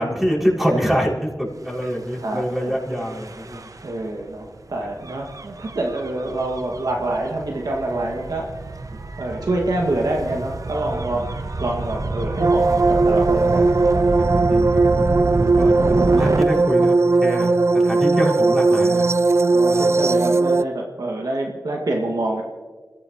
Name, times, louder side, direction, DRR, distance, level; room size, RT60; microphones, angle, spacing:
voice 1, 0.0-3.6 11.1-11.3 14.2-14.8 15.3-19.1 19.7-19.9, equal, 5° right, -3 dB, 6.2 m, -25 dB
Gull seagull / Waves surf / Siren, 1.7-16.4, right 3 dB, 60° right, 1.0 m, -28 dB
voice 2, 2.2-2.8 3.8-8.5 9.2-14.2 15.7-16.0 19.5-22.4, right 2 dB, 85° right, 0 dB, 2.2 m, -26 dB
sound 1, 12.4-20.6, right 3 dB, 45° right, 0.4 m, -18 dB
27.5 x 16.5 x 3.1 m, 1.4 s
cardioid pair, 45°, 6 cm